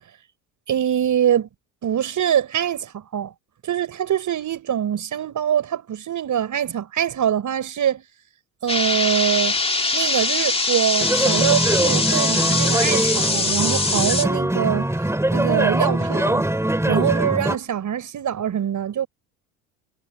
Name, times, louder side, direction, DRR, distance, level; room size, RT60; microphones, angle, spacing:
voice 1, 0.7-1.5 1.8-3.3 3.6-8.0 8.6-9.6 9.9-14.9 15.3-16.5 16.9-19.1, right 9 dB, 45° right, 5.2 m, -23 dB
sound 1, 8.7-14.2, left 3 dB, 15° left, 2.7 m, -22 dB
sound 2, 11.0-17.5, right 1 dB, 5° right, 5.3 m, -22 dB
supercardioid pair, 80°, 41 cm